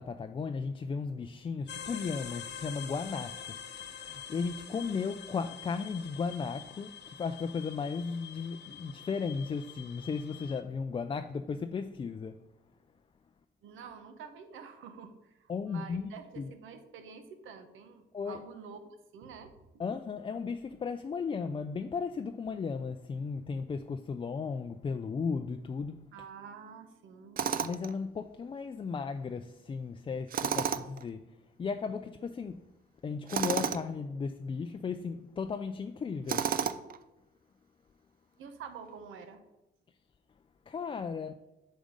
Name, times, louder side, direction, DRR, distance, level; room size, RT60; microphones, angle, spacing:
voice 1, 0.0-12.4 15.5-16.1 16.4-16.5 18.1-18.4 19.8-26.0 27.6-31.2 31.6-32.6 33.0-36.5 40.7-41.3, left 5 dB, 25° left, 0.3 m, -35 dB
sound 1, 1.7-10.6, left 8 dB, 60° left, 0.9 m, -46 dB
voice 2, 13.6-19.5 26.1-27.5 38.4-39.4, right 6 dB, 85° right, 0.8 m, -48 dB
Tools, 27.4-27.9 30.3-31.0 33.3-33.9 36.3-37.0, right 8 dB, 45° right, 0.4 m, -31 dB
5.2 x 5.1 x 6.3 m
cardioid pair, 90°, 20 cm